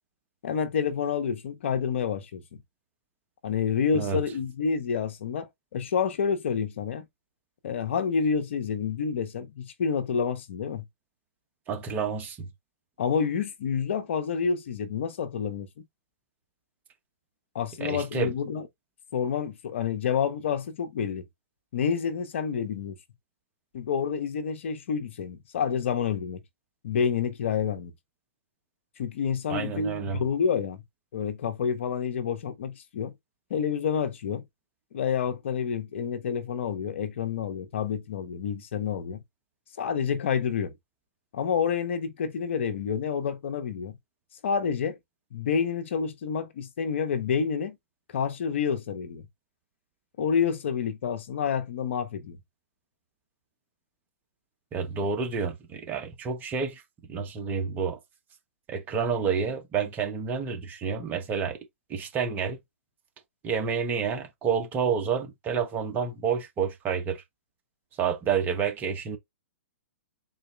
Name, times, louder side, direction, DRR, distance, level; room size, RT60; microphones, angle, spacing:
voice 1, 0.4-2.6 3.4-7.1 7.6-10.8 13.0-15.8 17.5-18.7 19.1-21.2 21.7-23.0 23.7-26.4 26.8-27.9 29.0-30.8 31.1-33.1 33.5-34.4 34.9-39.2 39.8-40.7 41.3-44.0 44.4-45.0 45.3-47.8 48.1-49.2 50.2-52.4, left 7 dB, 65° left, 0.9 m, -28 dB
voice 2, 11.7-12.5 17.8-18.3 29.5-30.2 54.7-56.8 57.1-58.0 58.7-61.6 61.9-62.6 63.4-67.2 68.0-69.2, right 6 dB, 25° right, 1.1 m, -29 dB
4.0 x 2.6 x 3.3 m
hypercardioid pair, 125°, 7 cm